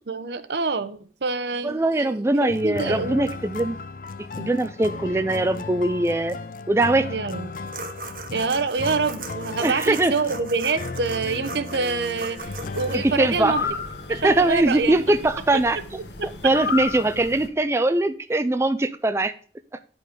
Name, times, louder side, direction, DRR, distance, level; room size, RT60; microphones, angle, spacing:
voice 1, 0.1-2.3 2.6-3.3 7.1-7.5 8.3-13.6 14.1-15.0, right 4 dB, 75° right, 0.8 m, -26 dB
voice 2, 1.6-3.8 4.4-6.4 6.7-7.1 9.6-10.2 12.9-13.6 14.1-15.8 16.2-19.3, right 2 dB, 15° right, 0.3 m, -22 dB
sound 1, 2.5-14.8, left 3 dB, 50° left, 0.5 m, -36 dB
sound 2, 7.7-13.0, right 3 dB, 50° right, 1.0 m, -38 dB
sound 3, 12.4-17.5, left 5 dB, 80° left, 1.4 m, -34 dB
9.8 x 5.3 x 5.1 m
head